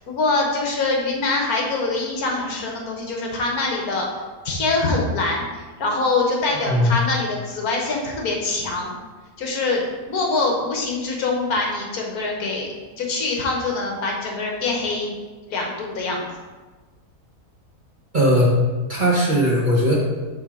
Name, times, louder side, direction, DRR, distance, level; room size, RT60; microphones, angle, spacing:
voice 1, 0.0-4.1 4.4-9.0 9.4-12.7 12.9-15.1 15.4-16.3, left 3 dB, 65° left, 0 dB, 1.6 m, -24 dB
voice 2, 6.6-7.0 18.1-18.5 18.9-19.9, equal, 35° right, -4 dB, 1.0 m, -18 dB
7.3 x 3.2 x 4.9 m, 1.3 s
omnidirectional pair, 1.7 m